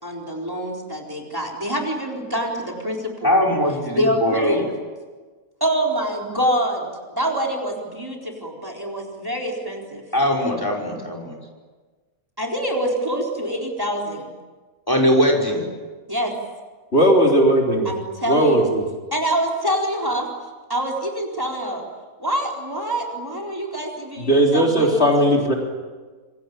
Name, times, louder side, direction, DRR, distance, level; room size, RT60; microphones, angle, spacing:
voice 1, 0.0-3.4 3.9-4.7 5.6-10.0 12.4-14.3 16.1-16.3 17.9-18.7 19.1-20.3 20.7-21.8 22.2-25.3, right 1 dB, 15° right, 0 dB, 4.2 m, -26 dB
voice 2, 3.2-4.6 10.1-11.4 14.9-15.6, equal, 15° left, 1 dB, 5.4 m, -20 dB
voice 3, 16.9-17.9 18.3-18.8 24.2-25.5, right 1 dB, 50° left, 0 dB, 3.9 m, -17 dB
28.0 x 24.5 x 8.8 m, 1.4 s
omnidirectional pair, 1.5 m